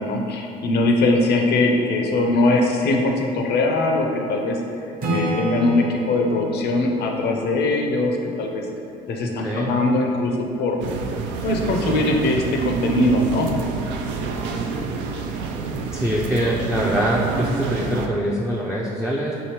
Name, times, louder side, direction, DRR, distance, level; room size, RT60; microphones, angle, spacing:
voice 1, 0.0-4.6 5.1-8.7 9.1-10.8 11.4-13.5, left 2 dB, 55° left, 1 dB, 0.6 m, -21 dB
Acoustic guitar / Strum, 5.0-8.6, equal, 45° right, 0.9 m, -29 dB
voice 2, 9.4-9.8 15.9-19.3, equal, 5° right, -5 dB, 0.4 m, -23 dB
sound 1, 10.8-18.1, right 4 dB, 65° right, 0.4 m, -27 dB
4.9 x 2.6 x 3.0 m, 2.7 s
hypercardioid pair, 60°, 20 cm